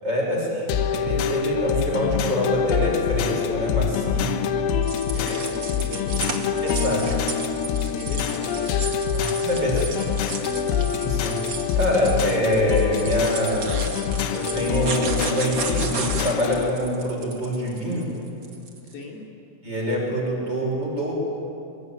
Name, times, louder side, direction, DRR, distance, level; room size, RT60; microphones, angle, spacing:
voice 1, 0.0-4.4 6.6-7.2 9.1-9.8 11.0-11.4 11.8-13.8 14.3-18.1 19.6-21.1, equal, 20° right, -2 dB, 5.9 m, -25 dB
sound 1, 0.7-16.7, left 8 dB, 85° left, 3.9 m, -25 dB
sound 2, 4.8-18.9, right 5 dB, 65° right, 1.2 m, -34 dB
voice 2, 5.1-6.6 7.9-8.9 9.5-10.7 18.8-19.2, left 3 dB, 60° left, -2 dB, 5.2 m, -38 dB
23.5 x 23.0 x 9.4 m, 2.6 s
omnidirectional pair, 5.8 m